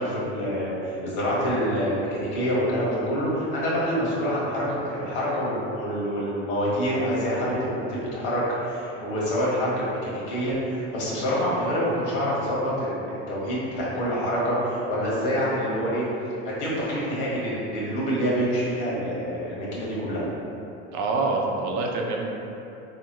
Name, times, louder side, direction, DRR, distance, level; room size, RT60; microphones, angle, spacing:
voice 1, 0.0-16.0 16.4-20.2, equal, 75° left, -6 dB, 1.3 m, -26 dB
voice 2, 20.9-22.3, right 3 dB, 55° right, 0 dB, 0.6 m, -26 dB
3.6 x 2.8 x 2.9 m, 2.9 s
hypercardioid pair, 90°, 36 cm